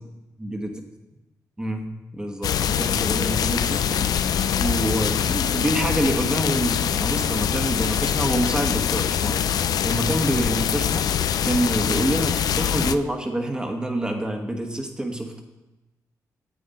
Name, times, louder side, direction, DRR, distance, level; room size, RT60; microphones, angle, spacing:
voice 1, 0.4-0.7 1.6-4.1 4.6-9.4 9.8-15.4, right 1 dB, 15° right, 3 dB, 1.3 m, -27 dB
sound 1, 2.4-13.0, left 9 dB, 75° left, 0.4 m, -24 dB
9.0 x 8.4 x 4.2 m, 1.0 s
cardioid pair, 90°, 7 cm